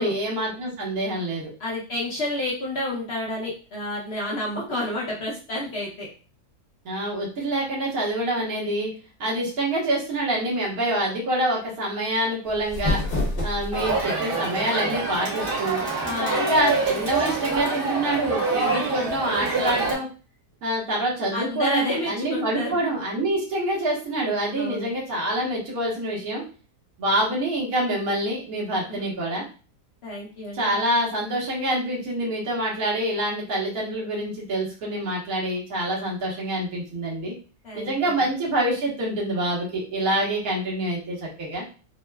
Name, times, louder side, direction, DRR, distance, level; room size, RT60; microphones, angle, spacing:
voice 1, 0.0-1.5 6.8-8.9 9.2-13.0 13.4-15.8 16.2-20.1 20.6-26.4 27.0-29.4 30.5-37.3 37.7-41.6, right 1 dB, 70° right, -4 dB, 1.6 m, -26 dB
voice 2, 1.6-6.1 16.0-16.5 21.3-22.8 24.6-24.9 28.9-29.1 30.0-30.8 37.6-38.3, left 1 dB, 60° left, -4 dB, 0.7 m, -30 dB
sound 1, 12.4-14.0, left 2 dB, 40° left, 1.0 m, -27 dB
Crowd, 13.7-19.9, right 3 dB, 40° right, 1.1 m, -26 dB
3.6 x 2.0 x 2.2 m, 0.37 s
omnidirectional pair, 1.6 m